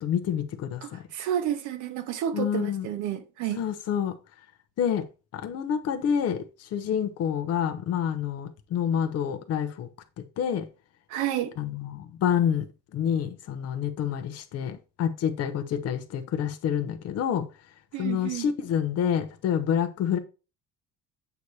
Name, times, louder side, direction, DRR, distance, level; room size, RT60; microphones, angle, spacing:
voice 1, 0.0-1.0 2.3-2.9 3.6-4.1 4.8-5.1 5.3-9.9 10.2-10.7 11.6-12.7 12.9-17.5 18.0-20.2, left 8 dB, 50° left, 0.8 m, -28 dB
voice 2, 0.8-3.6 11.1-11.5 17.9-18.5, right 10 dB, 65° right, 0.8 m, -30 dB
8.2 x 2.8 x 4.6 m
cardioid pair, 170°, 32 cm